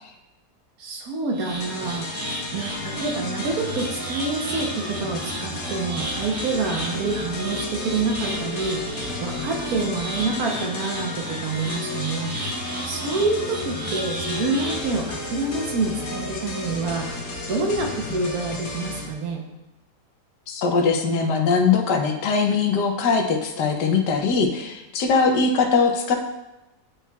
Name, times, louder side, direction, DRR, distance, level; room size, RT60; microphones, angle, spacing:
voice 1, 0.8-2.2 2.5-19.4, right 3 dB, 65° right, 2 dB, 1.2 m, -27 dB
sound 1, 1.3-14.8, right 1 dB, 35° right, 1.2 m, -34 dB
sound 2, 1.6-19.1, left 2 dB, 60° left, 1.4 m, -34 dB
sound 3, 2.6-18.3, left 1 dB, 20° right, 1.5 m, -37 dB
voice 2, 20.5-26.2, left 5 dB, 90° left, 4 dB, 1.3 m, -21 dB
9.3 x 4.5 x 2.3 m, 0.97 s
omnidirectional pair, 1.8 m